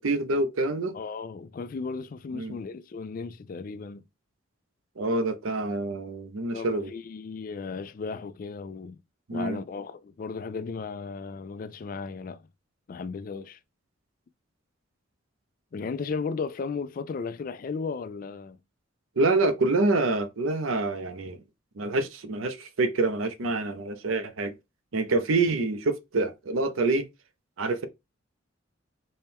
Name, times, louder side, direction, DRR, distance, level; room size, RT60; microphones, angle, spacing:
voice 1, 0.0-1.0 2.3-2.6 5.0-6.9 9.3-9.6 19.2-21.4 21.8-24.5 24.9-27.1 27.6-27.9, right 3 dB, 85° right, 0.6 m, -26 dB
voice 2, 0.9-4.0 6.5-9.0 9.3-12.4 12.9-13.6 15.7-18.6, left 4 dB, 45° left, 0.3 m, -35 dB
4.3 x 2.2 x 3.5 m
head